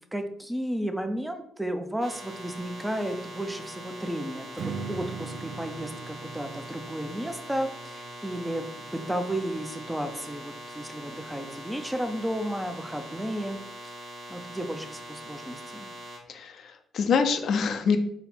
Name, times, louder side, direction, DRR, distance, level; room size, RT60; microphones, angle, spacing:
voice 1, 0.1-13.6 14.3-15.9, right 1 dB, 5° right, 7 dB, 0.5 m, -33 dB
sound 1, 2.0-16.2, equal, 45° right, 1.3 m, -42 dB
Strum, 4.6-9.8, right 5 dB, 70° right, 0.5 m, -41 dB
voice 2, 16.3-18.0, left 5 dB, 65° left, 7 dB, 0.5 m, -25 dB
4.1 x 2.2 x 4.2 m, 0.71 s
cardioid pair, 90°, 0 cm